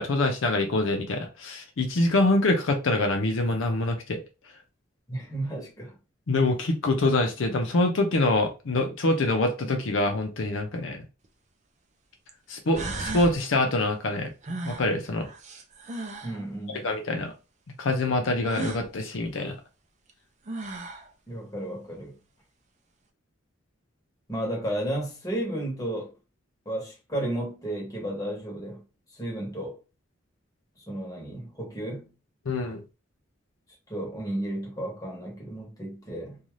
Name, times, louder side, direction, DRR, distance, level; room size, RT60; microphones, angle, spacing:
voice 1, 0.0-4.2 6.3-11.0 12.5-14.3 14.6-15.3 16.8-17.3 17.8-19.6 32.5-32.8, left 2 dB, 75° left, 0.6 m, -25 dB
voice 2, 5.1-5.9 16.2-16.9 21.3-22.2 24.3-26.1 26.6-28.8 29.2-29.8 30.9-32.1 33.9-36.4, right 1 dB, 20° left, 1.0 m, -33 dB
sound 1, 11.2-11.3 12.3-12.4 12.7-13.4 14.4-16.4 18.4-18.9 20.1-20.2 20.5-21.1, right 2 dB, 35° right, 0.4 m, -35 dB
2.6 x 2.3 x 3.1 m
head